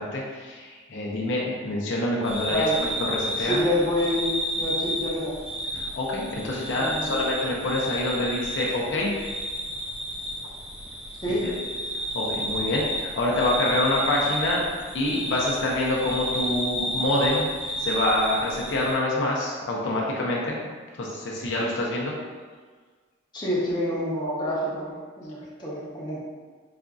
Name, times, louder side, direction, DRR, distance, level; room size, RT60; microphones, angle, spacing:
voice 1, 0.0-3.7 5.7-9.1 11.4-11.7 12.1-14.6 14.9-17.5 17.8-20.6 21.0-22.1, left 1 dB, 65° left, -3 dB, 0.5 m, -26 dB
sound 1, 2.2-18.9, equal, 5° right, 0.3 m, -31 dB
voice 2, 2.5-2.8 3.4-4.3 4.6-5.4 6.7-7.2 11.2-11.5 23.3-26.2, equal, 20° left, -7 dB, 0.7 m, -27 dB
4.9 x 2.5 x 2.3 m, 1.5 s
head